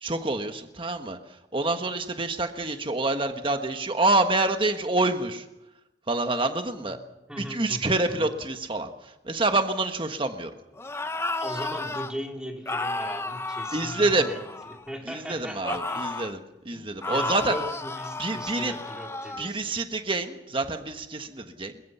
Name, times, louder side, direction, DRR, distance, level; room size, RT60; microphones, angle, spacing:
voice 1, 0.0-1.2 1.5-5.5 6.1-7.0 7.4-10.5 13.7-14.3 15.0-16.4 16.6-17.5 18.2-18.7 19.4-21.8, right 2 dB, 30° right, 7 dB, 1.4 m, -27 dB
voice 2, 7.3-8.3 11.4-14.4 14.7-16.2 16.7-16.8 17.1-19.6, equal, 5° right, 1 dB, 3.1 m, -38 dB
sound 1, 10.8-12.1 12.7-14.9 15.6-16.4 17.0-19.5, left 2 dB, 15° left, 0.8 m, -32 dB
22.5 x 21.5 x 5.6 m, 0.93 s
head